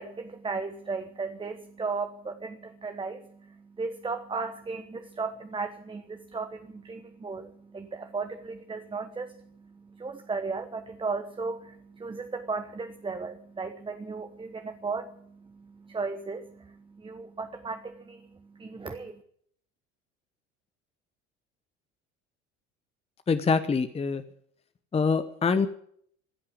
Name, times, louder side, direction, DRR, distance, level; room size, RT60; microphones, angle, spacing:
voice 1, 0.0-19.2, right 4 dB, 15° right, 7 dB, 1.1 m, -36 dB
voice 2, 23.3-24.2 24.9-25.7, left 5 dB, 15° left, 12 dB, 0.9 m, -25 dB
15.5 x 8.6 x 9.9 m, 0.65 s
figure-of-eight pair, 60°, 35 cm